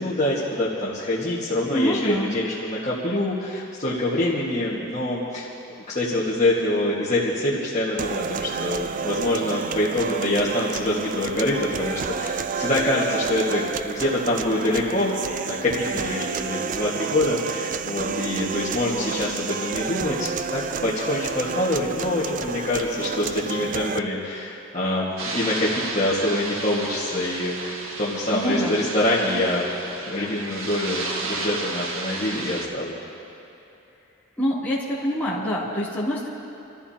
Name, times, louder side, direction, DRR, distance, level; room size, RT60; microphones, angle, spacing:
voice 1, 0.0-5.5 5.9-29.8 30.1-33.0, left 1 dB, 35° left, -8 dB, 1.7 m, -25 dB
voice 2, 1.7-2.4 28.3-28.8 34.4-36.3, equal, 10° left, -10 dB, 2.9 m, -25 dB
sound 1, 8.0-24.0, right 6 dB, 40° right, 0.3 m, -30 dB
sound 2, 25.2-32.7, right 3 dB, 75° right, 1.4 m, -33 dB
28.0 x 14.5 x 2.9 m, 2.8 s
head